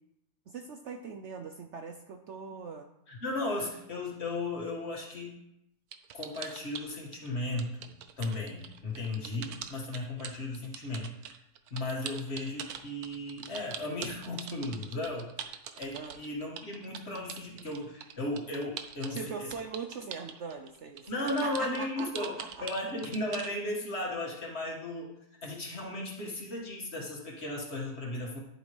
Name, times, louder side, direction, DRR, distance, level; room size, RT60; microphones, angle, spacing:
voice 1, 0.5-2.9 15.9-16.2 19.1-21.1 21.4-22.7, right 5 dB, 60° right, 6 dB, 0.8 m, -41 dB
voice 2, 3.1-5.3 6.1-11.4 11.7-15.3 15.8-19.5 21.1-22.3 22.6-25.1 25.4-28.4, left 2 dB, 45° left, -2 dB, 2.0 m, -35 dB
sound 1, 5.9-7.3 7.6-23.5, right 8 dB, 75° right, 1.2 m, -43 dB
11.0 x 7.9 x 3.3 m, 0.83 s
omnidirectional pair, 1.6 m